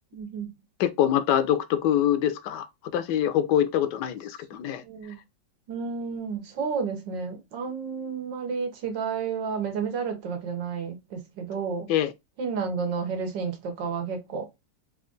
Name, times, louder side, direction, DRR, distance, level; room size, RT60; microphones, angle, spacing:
voice 1, 0.1-0.5 4.8-5.2 5.7-11.9 12.4-14.5, right 5 dB, 85° right, 1.7 m, -31 dB
voice 2, 0.8-2.7 2.9-4.8 11.9-12.1, left 10 dB, 75° left, 1.1 m, -24 dB
4.2 x 2.5 x 3.8 m
omnidirectional pair, 1.9 m